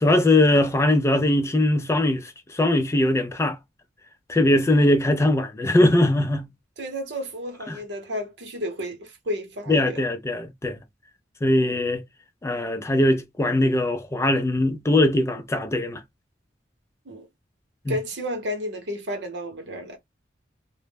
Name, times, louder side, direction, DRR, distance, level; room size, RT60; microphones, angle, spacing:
voice 1, 0.0-3.6 4.3-6.5 7.7-7.8 9.7-10.8 11.4-12.0 12.4-16.0 17.9-18.0, left 1 dB, 15° left, 0.3 m, -21 dB
voice 2, 6.8-10.0 11.6-11.8 17.1-17.3 17.9-20.0, equal, 70° right, 0.7 m, -32 dB
2.1 x 2.0 x 3.2 m
head